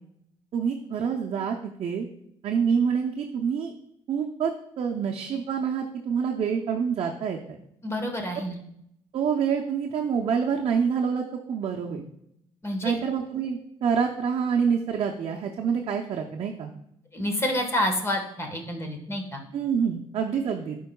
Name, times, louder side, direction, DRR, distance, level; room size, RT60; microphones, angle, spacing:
voice 1, 0.5-2.1 2.4-3.7 4.1-4.5 4.8-7.6 9.1-12.1 12.8-16.7 19.5-20.8, right 6 dB, 55° right, 1 dB, 0.6 m, -27 dB
voice 2, 7.8-8.6 12.6-13.0 17.1-19.4, left 1 dB, 25° left, 4 dB, 1.3 m, -28 dB
11.5 x 4.6 x 2.3 m, 0.76 s
cardioid pair, 95°, 11 cm